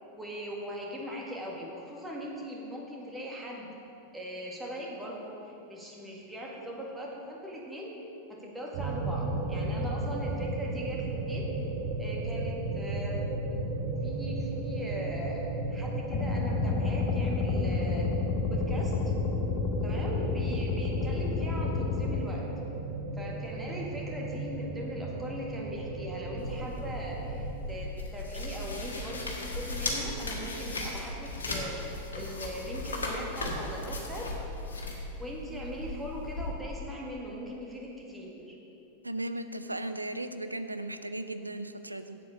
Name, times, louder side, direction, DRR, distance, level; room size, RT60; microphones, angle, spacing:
voice 1, 0.0-3.7 4.1-8.0 8.3-11.5 12.0-13.3 14.0-18.1 18.5-18.9 19.8-22.5 23.1-34.3 35.1-38.6, equal, 10° right, -2 dB, 1.8 m, -40 dB
sound 1, 8.7-27.6, right 2 dB, 50° right, 1.0 m, -35 dB
sound 2, 16.1-22.2, left 5 dB, 35° left, 0.9 m, -30 dB
sound 3, 26.4-36.5, left 2 dB, 70° left, 1.4 m, -37 dB
voice 2, 39.0-42.2, right 1 dB, 85° right, 10 dB, 0.4 m, -36 dB
8.0 x 7.8 x 6.3 m, 2.8 s
figure-of-eight pair, 90°, 0 cm